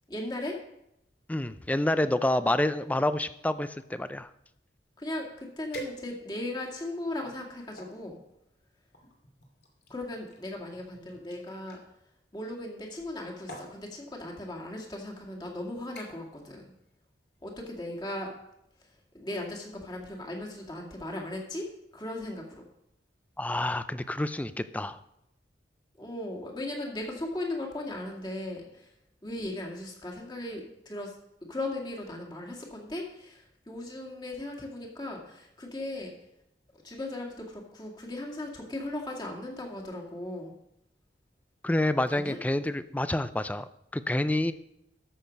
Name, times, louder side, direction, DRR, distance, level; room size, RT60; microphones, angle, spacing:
voice 1, 0.1-0.6 5.0-8.2 9.9-11.8 12.3-16.7 17.4-18.3 18.8-18.9 19.1-21.7 21.9-22.6 26.0-28.9 29.2-31.2 31.4-36.1 36.8-40.5 42.1-42.4, left 1 dB, 25° left, -1 dB, 2.1 m, -37 dB
voice 2, 1.3-4.3 23.4-25.0 41.6-44.5, left 1 dB, 10° left, 13 dB, 0.4 m, -28 dB
sound 1, 5.7-6.5 7.1-8.0 8.9-11.8 12.9-13.2 13.5-13.8 14.7-14.8 15.3-15.5 16.0-16.4 16.7-17.0 17.4-17.5, right 1 dB, 65° left, 2.7 m, -46 dB
13.5 x 6.5 x 5.3 m, 0.81 s
head